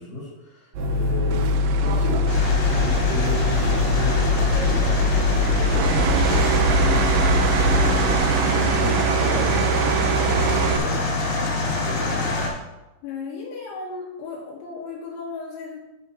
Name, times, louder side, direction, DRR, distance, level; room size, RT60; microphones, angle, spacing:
voice 1, 0.0-2.3 2.7-7.2 7.6-8.1 8.4-12.3, left 3 dB, 45° left, -5 dB, 2.2 m, -33 dB
sound 1, 0.7-8.2, left 2 dB, 65° right, 2.4 m, -22 dB
sound 2, 1.3-10.8, right 9 dB, 85° right, 2.4 m, -25 dB
sound 3, 2.3-12.5, left 4 dB, 65° left, 3.2 m, -25 dB
voice 2, 13.0-15.8, left 4 dB, 80° left, -2 dB, 3.5 m, -35 dB
11.0 x 6.6 x 2.8 m, 1.0 s
omnidirectional pair, 5.3 m